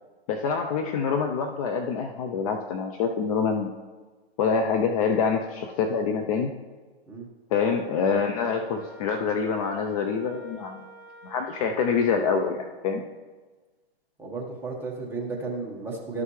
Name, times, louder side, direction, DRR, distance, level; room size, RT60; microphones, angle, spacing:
voice 1, 0.3-3.7 4.4-6.5 7.5-10.8 11.2-13.0, left 5 dB, 35° left, 4 dB, 0.6 m, -26 dB
Wind instrument woodwind instrument, 7.5-12.4, right 2 dB, 80° left, 2.8 m, -48 dB
voice 2, 14.2-16.2, right 3 dB, 5° right, -2 dB, 1.3 m, -33 dB
12.5 x 5.6 x 3.2 m, 1.3 s
hypercardioid pair, 135°, 31 cm